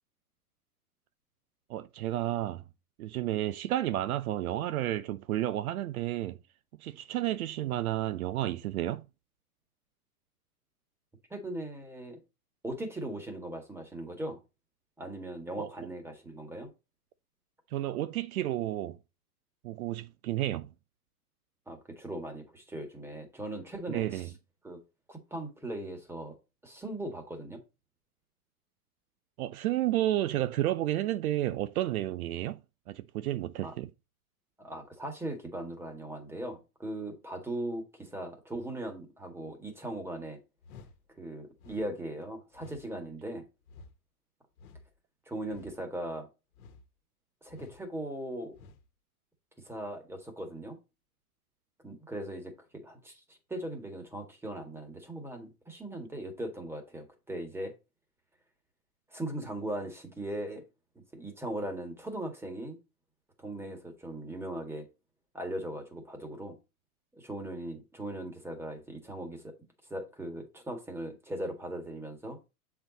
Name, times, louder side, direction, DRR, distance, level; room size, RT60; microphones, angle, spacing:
voice 1, 1.7-2.6 3.0-6.4 6.8-9.0 15.6-15.7 17.7-19.0 19.6-20.7 23.9-24.3 29.4-32.6 32.9-33.9, right 14 dB, 70° right, 0.7 m, -31 dB
voice 2, 11.3-12.2 12.6-14.4 15.0-16.7 21.7-24.3 24.6-24.8 25.1-26.3 26.6-27.6 33.6-33.7 34.6-40.4 41.2-43.4 45.3-46.3 47.4-48.6 49.6-50.8 51.8-57.7 59.1-60.6 61.1-62.8 63.4-64.9 65.3-66.6 67.1-69.5 69.9-72.4, right 1 dB, 5° right, 1.8 m, -39 dB
sound 1, 40.6-41.0 41.6-41.9 42.5-42.9 43.7-43.9 44.6-44.9 45.5-45.7 46.5-46.9 47.5-47.8 48.5-48.8, left 4 dB, 70° left, 1.4 m, -51 dB
7.3 x 4.7 x 4.0 m
hypercardioid pair, 130°, 45 cm